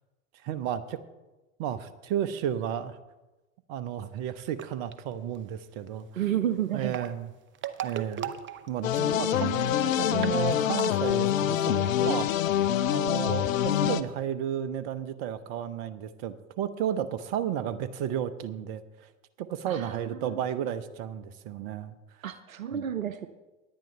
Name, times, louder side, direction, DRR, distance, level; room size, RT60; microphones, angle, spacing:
voice 1, 0.4-1.0 1.6-3.0 3.7-6.2 6.7-7.3 7.8-8.3 8.7-12.3 12.9-19.1 19.4-21.9 22.7-22.8, right 10 dB, 55° right, 13 dB, 1.1 m, -33 dB
sound 1, 4.5-4.9 6.7-9.2 9.5-9.6 9.8-9.9 10.1-11.1, right 9 dB, 30° right, 0.8 m, -37 dB
voice 2, 6.2-7.0 9.0-9.5 19.7-20.4 22.2-23.3, right 10 dB, 90° right, 12 dB, 0.7 m, -32 dB
sound 2, 8.8-14.0, left 11 dB, 80° left, 0.7 m, -26 dB
18.0 x 10.5 x 3.4 m, 1.1 s
hypercardioid pair, 80°, 39 cm